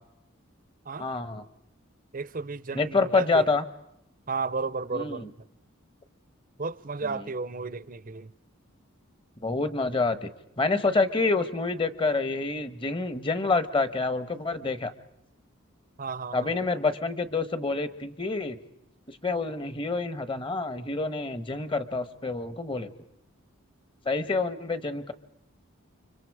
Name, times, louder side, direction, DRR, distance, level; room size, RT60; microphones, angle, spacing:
voice 1, 1.0-1.4 2.7-3.6 4.9-5.3 7.0-7.2 9.4-10.3 10.6-14.9 16.3-18.6 19.2-22.9 24.0-25.1, left 3 dB, 25° left, 1.3 m, -27 dB
voice 2, 2.1-3.4 4.3-5.3 6.6-8.3 16.0-16.6, right 4 dB, 40° right, 0.8 m, -33 dB
29.5 x 25.5 x 4.9 m
head